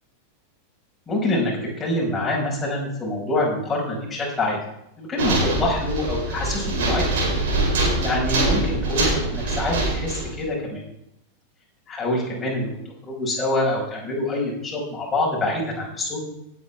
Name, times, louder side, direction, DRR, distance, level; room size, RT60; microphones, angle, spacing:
voice 1, 1.1-4.6 5.0-7.1 8.0-10.8 11.9-12.7 13.1-16.2, left 2 dB, 15° left, -3 dB, 5.5 m, -25 dB
sound 1, 5.2-10.4, right 2 dB, 55° right, 4.7 m, -23 dB
18.5 x 8.3 x 3.6 m, 0.78 s
figure-of-eight pair, 90°, 0 cm